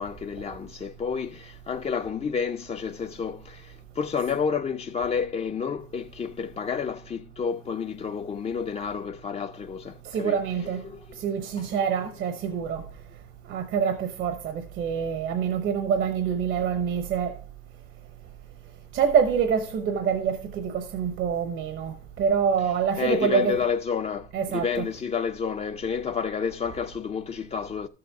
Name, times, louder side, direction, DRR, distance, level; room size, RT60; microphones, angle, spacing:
voice 1, 0.0-11.2 11.6-11.7 22.6-27.9, left 6 dB, 30° left, 0.4 m, -30 dB
voice 2, 10.0-10.8 11.2-12.8 13.5-17.4 18.9-23.6 24.3-24.9, right 7 dB, 80° right, 0.9 m, -26 dB
12.5 x 7.0 x 3.5 m
cardioid pair, 90°, 20 cm